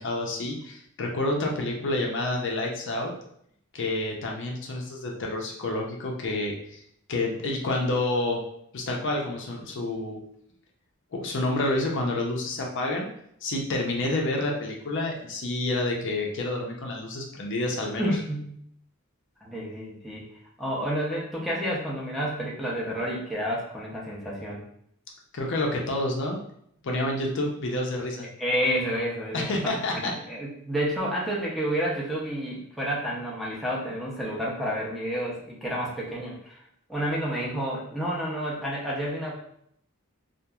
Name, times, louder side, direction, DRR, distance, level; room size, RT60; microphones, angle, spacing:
voice 1, 0.0-3.1 3.7-6.8 7.1-8.4 8.7-10.2 11.1-13.1 13.4-18.1 25.3-26.4 26.8-28.3 29.3-30.1, left 2 dB, 60° left, 0 dB, 0.5 m, -28 dB
voice 2, 18.0-18.5 19.4-20.3 20.6-24.7 28.4-29.6 29.9-30.0 30.3-36.6 36.9-39.3, equal, ahead, -6 dB, 0.5 m, -30 dB
2.9 x 2.4 x 2.3 m, 0.69 s
head